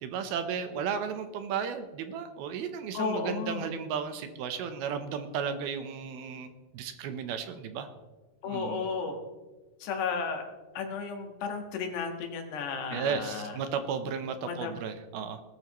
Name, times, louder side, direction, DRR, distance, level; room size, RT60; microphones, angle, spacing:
voice 1, 0.0-7.9 8.5-8.9 12.9-15.4, right 7 dB, 75° right, 8 dB, 2.7 m, -34 dB
voice 2, 2.9-3.7 8.4-9.2 9.8-10.5 10.8-13.6 14.4-14.7, left 5 dB, 80° left, 4 dB, 3.7 m, -33 dB
20.0 x 12.5 x 3.1 m, 1.2 s
omnidirectional pair, 4.7 m